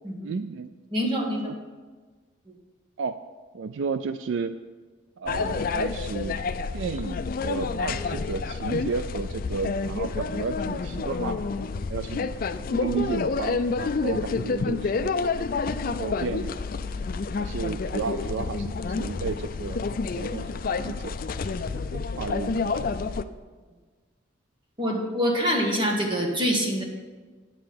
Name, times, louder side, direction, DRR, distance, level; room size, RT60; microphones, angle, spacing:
voice 1, 0.2-0.7 1.4-1.5 3.0-3.2 3.5-4.5 5.2-6.4 6.7-7.2 7.4-11.4 11.9-12.3 12.6-15.1 15.8-16.6 17.4-19.9 20.1-21.1 21.9-22.9, right 5 dB, 65° right, 11 dB, 0.3 m, -33 dB
voice 2, 0.9-1.5 2.5-2.6 24.8-26.8, equal, 25° right, 0 dB, 1.5 m, -25 dB
sound 1, 5.3-23.2, left 4 dB, 45° left, 0.4 m, -29 dB
9.6 x 7.6 x 5.2 m, 1.4 s
head